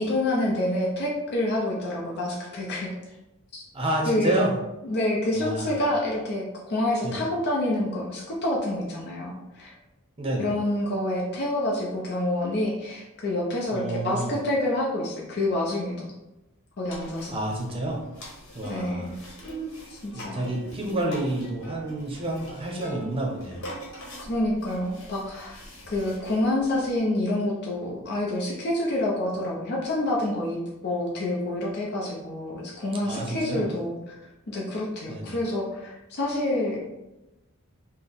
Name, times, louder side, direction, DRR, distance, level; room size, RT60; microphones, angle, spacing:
voice 1, 0.0-2.9 3.5-3.6 4.1-4.4 4.8-9.7 10.4-16.1 16.8-17.4 18.7-19.2 19.9-20.4 24.2-25.6 25.9-34.1 34.5-36.8, left 1 dB, 50° left, -3 dB, 0.6 m, -27 dB
voice 2, 3.7-4.6 5.3-5.8 7.0-7.2 10.2-10.5 13.7-14.3 17.3-18.0 18.5-19.1 20.1-23.7 33.0-33.7 35.1-35.4, right 1 dB, 25° right, 0 dB, 0.7 m, -29 dB
sound 1, 16.9-27.0, right 1 dB, 65° left, 1.2 m, -42 dB
4.3 x 2.1 x 3.5 m, 0.97 s
head